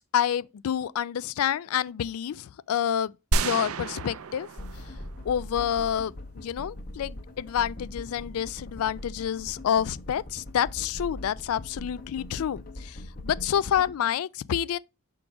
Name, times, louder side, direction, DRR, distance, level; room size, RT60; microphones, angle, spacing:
voice 1, 0.1-4.5 5.2-13.0 13.2-14.8, left 9 dB, 85° left, 0.3 m, -28 dB
sound 1, 3.3-5.6, right 3 dB, 80° right, 0.5 m, -30 dB
sound 2, 4.6-14.0, left 1 dB, 40° left, 0.9 m, -41 dB
5.9 x 3.8 x 4.8 m
head